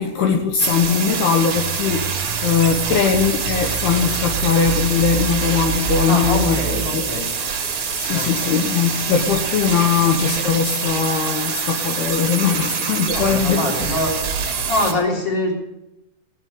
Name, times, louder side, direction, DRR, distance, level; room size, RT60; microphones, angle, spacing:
voice 1, 0.0-6.6 6.9-7.1 8.0-13.9, left 6 dB, 75° left, 5 dB, 2.9 m, -20 dB
sound 1, 0.6-14.9, right 6 dB, 40° right, 2.2 m, -25 dB
sound 2, 1.6-6.9, right 8 dB, 85° right, 1.8 m, -28 dB
voice 2, 6.0-7.3 8.1-8.6 13.1-14.2 14.7-15.5, left 1 dB, 20° left, 0 dB, 3.5 m, -24 dB
17.5 x 7.6 x 9.6 m, 0.87 s
omnidirectional pair, 4.9 m